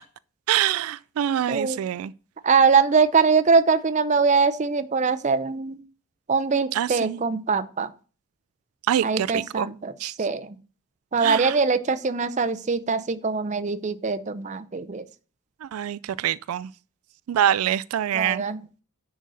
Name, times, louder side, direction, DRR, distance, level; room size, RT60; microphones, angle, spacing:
voice 1, 0.5-2.1 6.7-7.2 8.9-9.7 10.0-10.1 11.2-11.6 15.6-16.7 17.3-18.4, right 10 dB, 90° right, 0.3 m, -25 dB
voice 2, 2.4-5.8 6.3-7.9 9.0-9.9 10.2-10.6 11.1-15.0 18.1-18.6, right 5 dB, 35° right, 0.5 m, -22 dB
10.0 x 4.0 x 6.3 m
head